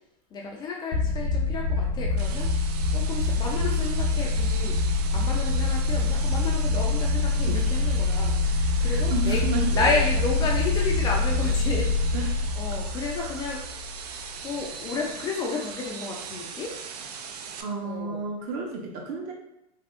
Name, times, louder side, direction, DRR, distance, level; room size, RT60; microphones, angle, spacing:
voice 1, 0.3-4.8 5.1-9.4 9.7-13.6 14.4-16.7 17.8-18.3, left 4 dB, 20° left, -1 dB, 0.3 m, -32 dB
sound 1, 0.9-14.2, left 3 dB, 75° left, 0.9 m, -25 dB
sound 2, 2.2-17.6, right 6 dB, 70° right, 0.4 m, -40 dB
voice 2, 8.8-9.9 12.1-12.2 13.2-13.3 17.6-19.3, right 4 dB, 40° right, 1 dB, 0.7 m, -31 dB
3.4 x 2.6 x 2.4 m, 0.84 s
hypercardioid pair, 130°, 21 cm